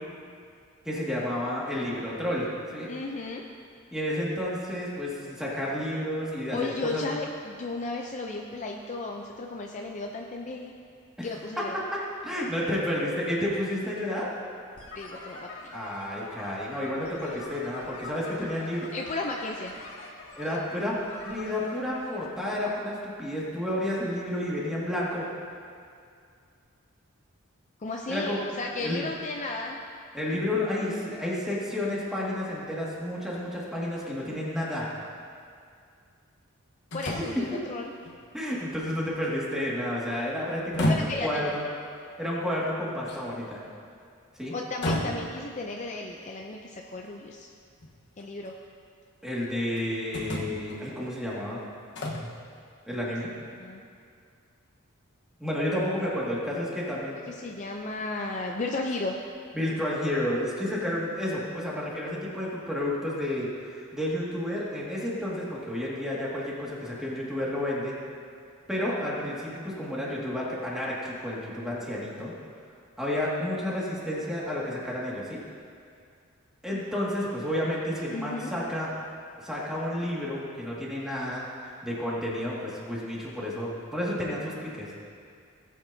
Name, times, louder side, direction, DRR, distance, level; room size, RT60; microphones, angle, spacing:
voice 1, 0.8-2.9 3.9-7.0 11.2-11.3 11.6-11.7 11.9-14.3 15.7-18.9 20.4-21.0 21.2-25.3 28.1-29.0 30.1-34.9 37.2-37.3 38.3-41.7 42.2-43.6 44.4-44.5 49.2-51.6 52.9-53.6 55.4-57.2 59.5-67.9 68.7-72.3 73.0-75.4 76.6-78.9 79.4-85.0, left 1 dB, ahead, -6 dB, 2.0 m, -31 dB
voice 2, 2.9-3.4 6.5-10.7 11.2-11.8 15.0-15.8 18.9-19.7 27.8-29.8 36.9-37.9 40.9-41.5 44.5-47.5 48.2-48.5 53.6-53.8 57.3-59.2 78.1-78.5, left 3 dB, 35° left, 1 dB, 0.5 m, -34 dB
sound 1, 14.8-22.7, left 2 dB, 70° left, 1.8 m, -45 dB
sound 2, 34.0-34.1 36.9-37.5 38.0-38.2 38.6-39.6 40.5-41.3 43.1-43.5 44.8-45.5 47.1-47.2 47.8-48.5 49.8-49.9 50.1-50.8 52.0-52.3, left 1 dB, 55° left, 1.2 m, -31 dB
18.0 x 8.5 x 2.8 m, 2.3 s
head